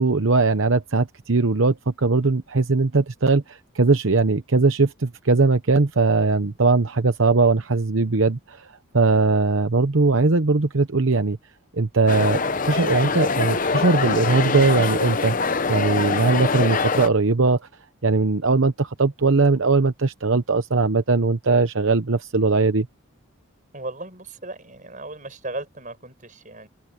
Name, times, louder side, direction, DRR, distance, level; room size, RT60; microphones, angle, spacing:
voice 1, 0.0-11.4 11.7-15.4 15.7-17.6 18.0-22.9, right 3 dB, 65° right, 0.9 m, -20 dB
sound 1, 12.1-17.1, left 4 dB, 40° left, 0.7 m, -24 dB
voice 2, 23.7-26.7, right 2 dB, 35° right, 6.1 m, -36 dB
open air
head